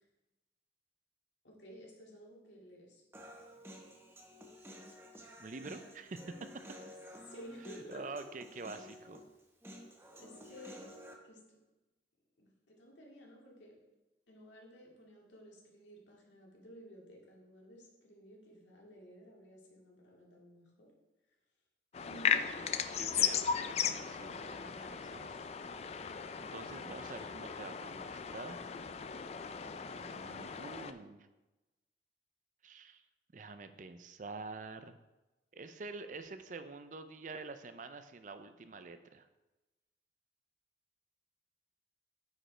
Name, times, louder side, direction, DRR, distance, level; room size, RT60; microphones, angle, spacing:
voice 1, 1.4-3.0 7.2-8.1 10.1-10.9 11.2-11.6 12.4-13.8 14.3-20.9 22.0-22.7 26.6-26.9 29.6-30.0, equal, 85° left, -2 dB, 2.2 m, -54 dB
Human voice, 3.1-11.1, equal, 15° right, 0.8 m, -52 dB
voice 2, 5.4-6.2 7.9-9.2 23.0-25.4 26.4-28.7 30.0-31.3 32.6-33.0 33.3-35.0 35.5-39.3, right 3 dB, 45° right, 10 dB, 0.5 m, -47 dB
sound 1, 21.9-30.9, left 7 dB, 35° left, 0.3 m, -37 dB
9.4 x 5.1 x 4.4 m, 1.1 s
head